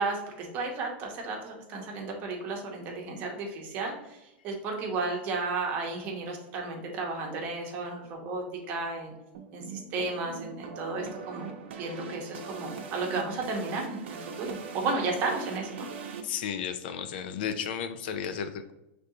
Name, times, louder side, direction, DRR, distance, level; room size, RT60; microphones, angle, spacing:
voice 1, 0.0-4.2 4.4-9.1 9.5-11.5 11.8-15.9, right 3 dB, 30° right, 1 dB, 0.9 m, -33 dB
sound 1, 9.3-16.2, right 6 dB, 75° right, 0.7 m, -41 dB
voice 2, 16.2-18.7, left 8 dB, 55° left, 10 dB, 0.4 m, -33 dB
5.1 x 3.3 x 2.7 m, 0.93 s
supercardioid pair, 175°, 6 cm